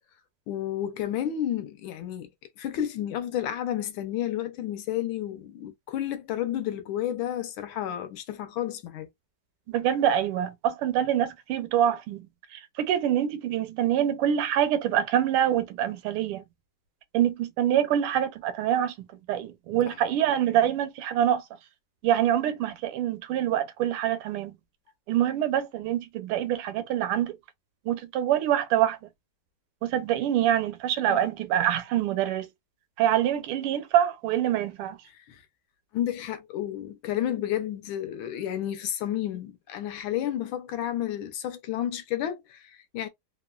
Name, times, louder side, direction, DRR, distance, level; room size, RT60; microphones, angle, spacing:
voice 1, 0.5-2.3 2.6-9.1 19.9-20.0 31.1-31.2 35.2-35.4 35.9-43.1, left 11 dB, 75° left, 1.3 m, -31 dB
voice 2, 9.7-16.4 17.1-18.9 19.3-21.4 22.0-24.6 25.1-27.4 27.9-29.0 29.8-32.5 33.0-35.0, right 10 dB, 80° right, 1.5 m, -25 dB
3.5 x 2.1 x 2.2 m
omnidirectional pair, 2.4 m